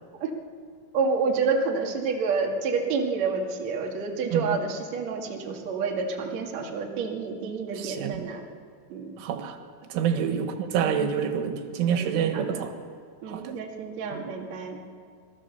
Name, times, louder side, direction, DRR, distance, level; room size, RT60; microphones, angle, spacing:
voice 1, 0.9-8.5 8.9-9.1 10.1-10.3 11.8-12.6 13.2-14.8, right 4 dB, 45° right, 0 dB, 2.8 m, -29 dB
voice 2, 7.8-8.2 9.2-9.6 9.9-12.7 13.3-13.5 14.1-14.2, right 8 dB, 85° right, 6 dB, 3.9 m, -27 dB
25.5 x 19.0 x 7.0 m, 2.2 s
omnidirectional pair, 5.4 m